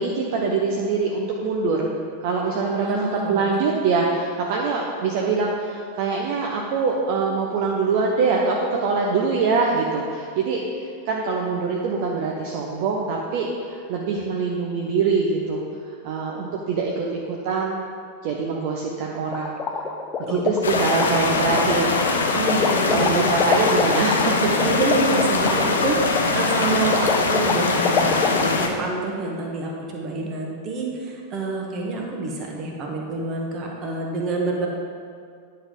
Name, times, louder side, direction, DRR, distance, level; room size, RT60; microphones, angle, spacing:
voice 1, 0.0-1.9 2.2-15.6 16.0-17.8 18.2-19.6 20.3-22.3 22.9-24.5, right 4 dB, 50° right, -1 dB, 0.7 m, -24 dB
voice 2, 2.8-3.4 20.2-20.4 22.3-23.2 24.5-34.7, right 3 dB, 30° right, 0 dB, 1.4 m, -27 dB
sound 1, 19.3-28.4, left 6 dB, 25° left, 0.6 m, -25 dB
sound 2, 20.6-28.7, left 3 dB, 70° left, 0.8 m, -22 dB
9.9 x 5.5 x 3.8 m, 2.3 s
figure-of-eight pair, 90°, 0 cm